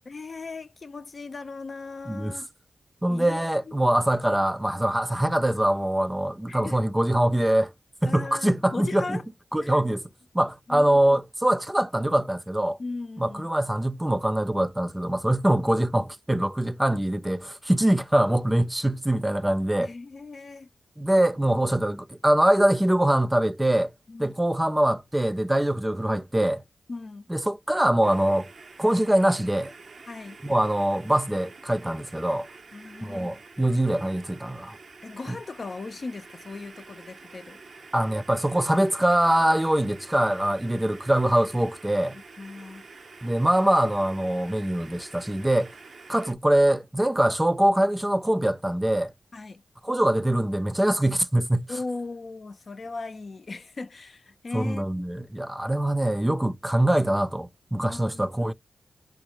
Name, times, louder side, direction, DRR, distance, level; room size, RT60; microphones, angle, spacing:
voice 1, 0.1-2.5 3.1-3.8 6.5-6.8 8.0-9.2 9.6-9.8 10.7-11.2 12.8-13.5 19.8-20.7 24.1-24.4 26.9-27.3 30.1-30.4 32.7-33.4 35.0-37.6 42.1-42.9 49.3-49.6 51.7-55.3 57.8-58.5, left 3 dB, 60° left, 0.5 m, -38 dB
voice 2, 3.0-7.7 8.0-9.2 9.5-10.1 10.3-12.8 13.2-19.9 21.0-23.9 24.2-26.6 27.3-28.5 28.8-29.7 30.4-32.5 33.0-34.8 35.3-35.4 37.9-42.2 43.2-45.7 46.1-49.1 49.8-51.7 54.5-58.5, right 1 dB, 15° right, 0.4 m, -23 dB
sound 1, 28.0-46.3, right 4 dB, 65° right, 0.6 m, -48 dB
4.8 x 2.0 x 3.0 m
cardioid pair, 40°, 0 cm